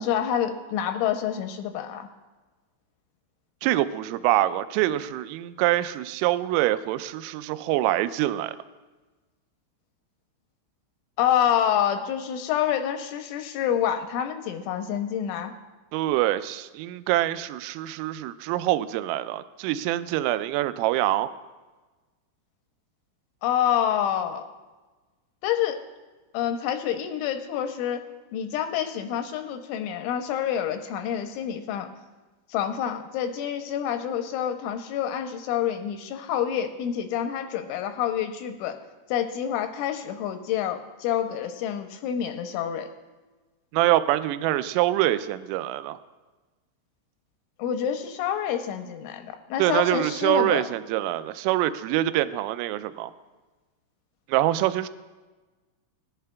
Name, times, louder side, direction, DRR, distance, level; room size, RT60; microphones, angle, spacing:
voice 1, 0.0-2.1 11.2-15.5 23.4-24.5 25.4-25.8 26.3-28.0 28.3-31.9 32.5-38.8 39.1-42.9 47.6-50.6, left 9 dB, 85° left, 6 dB, 2.9 m, -27 dB
voice 2, 3.6-8.6 15.9-21.3 43.7-46.0 49.6-53.1 54.3-54.9, right 14 dB, 85° right, 13 dB, 3.1 m, -25 dB
20.0 x 11.0 x 2.3 m, 1.3 s
omnidirectional pair, 5.9 m